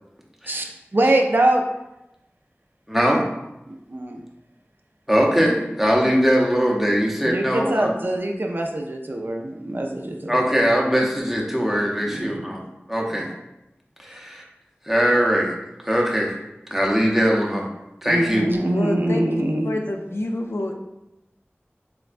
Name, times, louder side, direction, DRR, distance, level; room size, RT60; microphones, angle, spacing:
voice 1, 0.9-1.6 3.7-4.2 7.2-10.4 12.1-12.4 13.2-13.3 18.0-19.8, right 1 dB, 50° right, 2 dB, 0.4 m, -23 dB
voice 2, 2.9-3.2 5.1-7.9 10.3-12.6 12.9-13.3 14.0-14.4 14.9-15.5 15.8-16.4 16.7-17.7 18.0-18.4, equal, 5° right, -2 dB, 0.6 m, -21 dB
voice 3, 18.7-19.3 19.6-20.7, left 1 dB, 70° left, 3 dB, 0.3 m, -27 dB
4.3 x 2.1 x 2.4 m, 0.91 s
wide cardioid pair, 40°, 4 cm